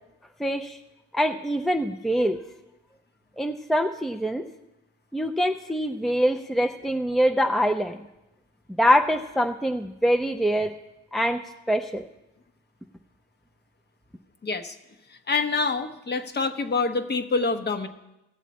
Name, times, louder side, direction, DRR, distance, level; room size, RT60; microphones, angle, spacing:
voice 1, 0.4-0.8 1.1-2.4 3.4-4.5 5.1-8.0 8.8-10.7 11.1-11.4 11.7-12.0, equal, ahead, 6 dB, 0.5 m, -24 dB
voice 2, 14.4-14.7 15.3-17.9, left 4 dB, 35° left, 8 dB, 0.9 m, -26 dB
15.5 x 7.3 x 4.2 m, 0.94 s
cardioid pair, 90°, 30 cm